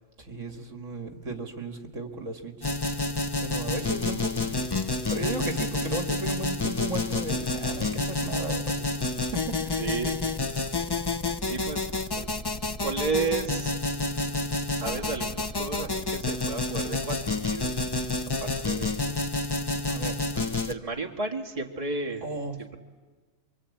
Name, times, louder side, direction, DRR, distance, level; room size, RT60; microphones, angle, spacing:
voice 1, 0.3-2.5 2.9-3.0 3.4-4.6 5.1-8.9 9.2-9.8 19.8-20.2 22.2-22.6, right 2 dB, 70° right, 4 dB, 2.5 m, -35 dB
sound 1, 2.6-20.7, left 3 dB, 20° left, 0.7 m, -29 dB
voice 2, 9.8-10.2 11.4-11.9 12.1-12.3 12.8-17.9 18.4-19.1 20.3-22.3 22.6-22.8, right 4 dB, 25° right, 1 dB, 2.0 m, -33 dB
27.5 x 24.0 x 8.6 m, 1.4 s
omnidirectional pair, 1.4 m